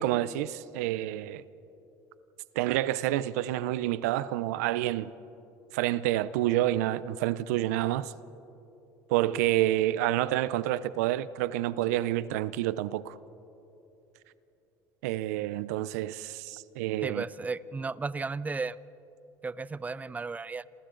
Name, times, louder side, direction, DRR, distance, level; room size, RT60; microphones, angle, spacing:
voice 1, 0.0-1.4 2.6-5.1 5.7-8.1 9.1-13.2 15.0-17.2, right 14 dB, 90° right, 0.6 m, -28 dB
voice 2, 17.0-18.8 19.4-20.6, right 4 dB, 20° right, 0.5 m, -34 dB
29.5 x 27.5 x 3.9 m
supercardioid pair, 100°, 8 cm